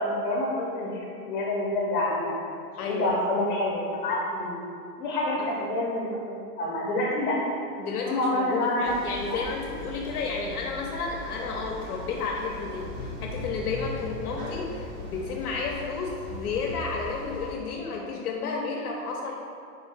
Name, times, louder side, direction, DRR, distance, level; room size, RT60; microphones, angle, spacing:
voice 1, 0.0-2.4 2.8-4.6 5.0-7.4 8.0-8.9 9.3-9.4, left 1 dB, 35° left, -3 dB, 0.7 m, -27 dB
voice 2, 2.8-3.2 5.4-5.5 7.8-19.4, left 4 dB, 65° left, -1 dB, 0.5 m, -32 dB
sound 1, 8.8-17.6, left 1 dB, 60° right, 1.2 m, -38 dB
3.7 x 2.7 x 3.3 m, 2.5 s
hypercardioid pair, 175°, 48 cm